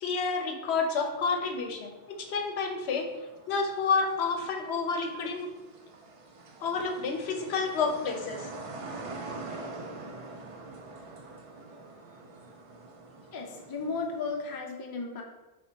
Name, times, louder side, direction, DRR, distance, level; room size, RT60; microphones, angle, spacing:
voice 1, 0.0-3.1 3.5-5.5 6.6-8.5, left 4 dB, 70° left, 4 dB, 0.8 m, -29 dB
sound 1, 1.1-14.6, right 2 dB, 55° right, 0.3 m, -45 dB
voice 2, 13.3-15.2, left 4 dB, 35° left, 0 dB, 0.3 m, -34 dB
3.3 x 2.7 x 4.3 m, 1.1 s
omnidirectional pair, 1.2 m